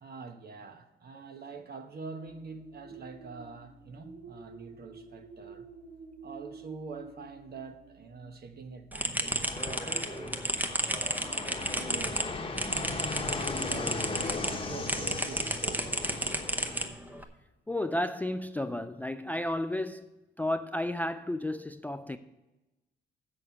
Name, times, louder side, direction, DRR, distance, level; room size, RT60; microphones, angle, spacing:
voice 1, 0.0-5.7 6.2-13.1 13.6-16.2, right 4 dB, 50° right, 1.1 m, -46 dB
sound 1, 2.2-14.6, right 4 dB, 70° right, 2.6 m, -52 dB
sound 2, 8.9-14.5 14.9-17.2, right 1 dB, 10° right, 0.8 m, -32 dB
Fixed-wing aircraft airplane, 9.2-16.9, left 3 dB, 25° left, 1.1 m, -37 dB
voice 2, 17.7-20.1 20.4-22.2, left 1 dB, 10° left, 0.3 m, -32 dB
7.6 x 6.4 x 6.9 m
cardioid pair, 90°, 20 cm